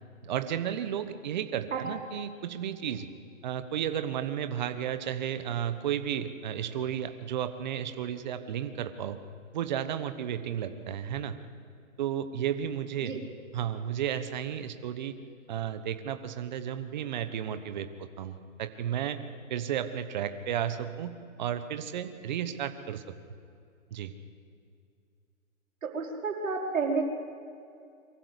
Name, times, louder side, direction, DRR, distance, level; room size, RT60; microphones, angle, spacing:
voice 1, 0.2-3.1 3.4-9.2 9.5-11.4 12.0-13.2 13.5-15.1 15.5-19.2 19.5-21.1 21.4-23.0 23.9-24.1, right 9 dB, 35° right, 10 dB, 1.2 m, -33 dB
voice 2, 25.8-27.0, right 4 dB, 75° right, -1 dB, 5.1 m, -30 dB
23.5 x 15.0 x 8.3 m, 2.4 s
hypercardioid pair, 165°, 39 cm